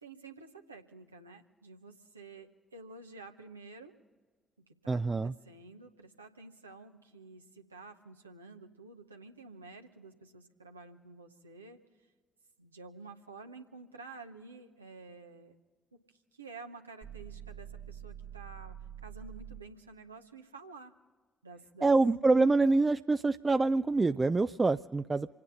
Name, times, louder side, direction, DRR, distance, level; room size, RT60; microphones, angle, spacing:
voice 1, 0.0-3.9 4.8-11.8 12.6-15.5 16.3-18.8 19.0-20.9 21.4-22.0, right 3 dB, 85° right, 4 dB, 0.9 m, -50 dB
voice 2, 4.9-5.3 21.8-25.3, right 3 dB, 25° right, 10 dB, 0.4 m, -26 dB
sound 1, 17.0-19.8, right 9 dB, 55° right, 1.4 m, -46 dB
27.0 x 9.7 x 5.5 m, 1.4 s
figure-of-eight pair, 40°, 0 cm